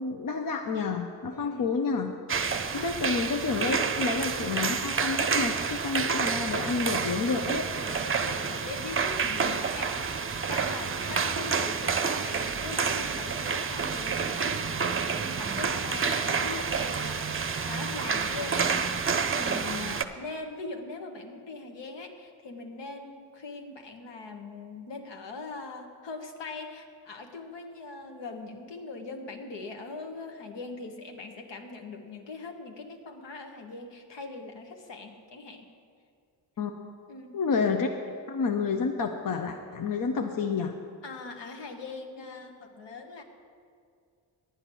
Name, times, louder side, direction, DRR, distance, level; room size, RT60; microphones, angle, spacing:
voice 1, 0.0-2.1 2.7-7.7 36.6-36.7 37.3-37.9 38.3-40.7, left 4 dB, 45° left, 4 dB, 0.9 m, -29 dB
voice 2, 1.3-1.7 2.5-3.2 7.5-10.1 10.4-35.7 37.1-37.4 41.0-43.2, left 3 dB, 70° left, 4 dB, 1.4 m, -41 dB
sound 1, 2.3-20.0, right 5 dB, 30° right, 0.7 m, -29 dB
10.5 x 8.8 x 6.2 m, 2.3 s
supercardioid pair, 55°, 45 cm